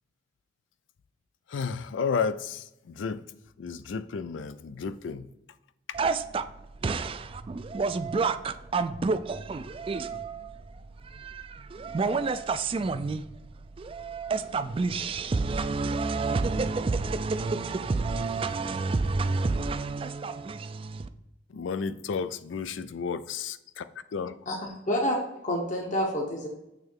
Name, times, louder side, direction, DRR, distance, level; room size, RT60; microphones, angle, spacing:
voice 1, 1.5-3.2 3.6-5.3 6.0-6.1 21.5-23.8 24.1-24.4, left 5 dB, 90° left, 0.4 m, -32 dB
voice 2, 5.9-6.5 6.8-10.6 11.0-13.2 13.8-21.1, right 4 dB, 30° right, 0.3 m, -29 dB
sound 1, 16.0-19.7, left 1 dB, 75° right, 1.1 m, -48 dB
voice 3, 24.9-25.2 25.4-26.5, equal, 40° left, 0.9 m, -27 dB
6.7 x 3.2 x 4.6 m
head